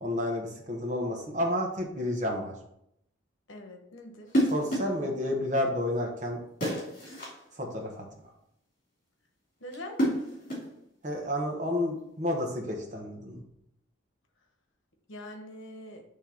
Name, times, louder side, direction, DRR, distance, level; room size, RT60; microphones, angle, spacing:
voice 1, 0.0-2.5 4.5-6.4 7.6-8.0 11.0-13.4, left 1 dB, 35° right, 1 dB, 1.3 m, -30 dB
voice 2, 3.5-4.3 9.6-10.0 15.1-16.0, left 1 dB, 75° left, 3 dB, 1.1 m, -43 dB
sound 1, 4.3-5.0 6.6-7.4 9.7-10.8, right 1 dB, 40° left, 3.0 m, -29 dB
9.0 x 3.4 x 4.5 m, 0.77 s
head